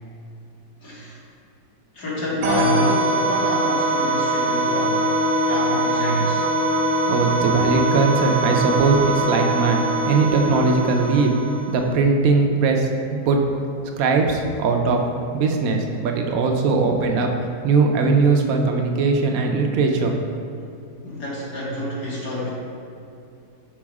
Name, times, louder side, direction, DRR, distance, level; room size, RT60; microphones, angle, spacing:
voice 1, 0.8-1.2 1.9-5.1 5.4-6.5 21.0-22.5, equal, 55° left, -6 dB, 1.7 m, -28 dB
sound 1, 2.4-11.9, right 1 dB, 85° right, 1.5 m, -22 dB
voice 2, 7.1-9.8 10.1-11.3 11.7-13.4 14.0-15.0 15.3-17.3 17.6-20.2, right 4 dB, 65° right, 2 dB, 0.9 m, -20 dB
6.2 x 3.9 x 4.7 m, 2.6 s
omnidirectional pair, 1.9 m